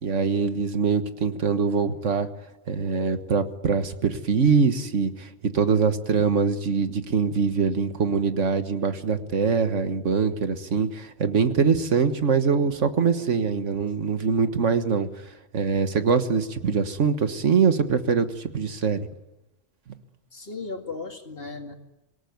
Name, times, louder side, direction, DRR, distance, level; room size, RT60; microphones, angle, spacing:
voice 1, 0.0-2.3 2.7-15.1 15.5-19.0, right 5 dB, 85° right, 9 dB, 1.8 m, -23 dB
voice 2, 20.3-21.8, left 3 dB, 50° left, 4 dB, 2.5 m, -36 dB
26.0 x 18.5 x 9.4 m, 0.98 s
omnidirectional pair, 1.2 m